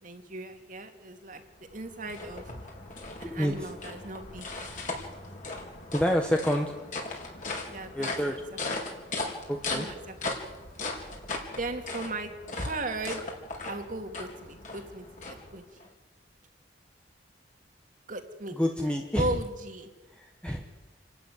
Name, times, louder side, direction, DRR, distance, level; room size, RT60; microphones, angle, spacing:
voice 1, 0.0-1.4 1.7-2.7 3.2-4.8 7.7-8.4 8.7-8.8 9.7-10.4 11.5-13.2 13.7-15.8 18.1-18.6 18.8-19.9, right 2 dB, 45° right, 5 dB, 2.5 m, -37 dB
sound 1, 1.4-15.9, left 3 dB, 45° left, 4.2 m, -38 dB
voice 2, 3.2-3.7 5.9-6.7 7.9-8.3 9.5-9.9 18.6-19.3 20.1-20.6, equal, 5° left, 2 dB, 1.4 m, -28 dB
29.0 x 12.5 x 9.6 m, 1.2 s
head